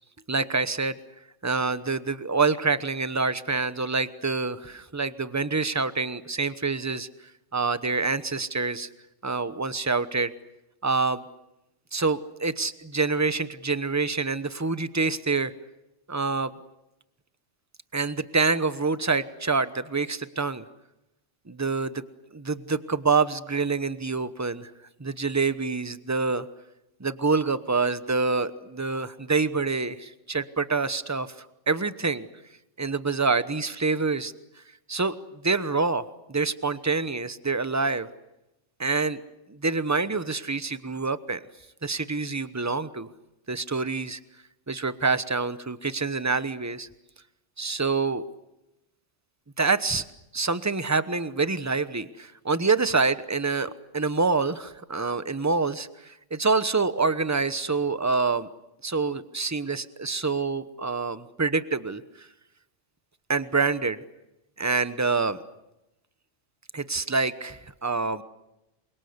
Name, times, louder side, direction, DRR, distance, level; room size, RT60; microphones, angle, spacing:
voice 1, 0.3-1.0 1.4-7.1 7.5-8.9 9.2-10.3 10.8-11.2 11.9-15.5 16.1-16.5 17.9-20.6 21.5-22.0 22.3-24.7 25.0-26.5 27.0-32.3 32.8-34.3 34.9-35.1 35.4-38.1 38.8-39.2 39.5-41.4 41.8-43.1 43.5-44.2 44.7-46.9 47.6-48.2 49.6-50.0 50.3-58.5 58.8-62.3 63.3-64.0 64.6-65.4 66.7-68.2, right 4 dB, 15° right, 13 dB, 0.9 m, -26 dB
28.5 x 24.0 x 8.0 m, 0.92 s
omnidirectional pair, 1.3 m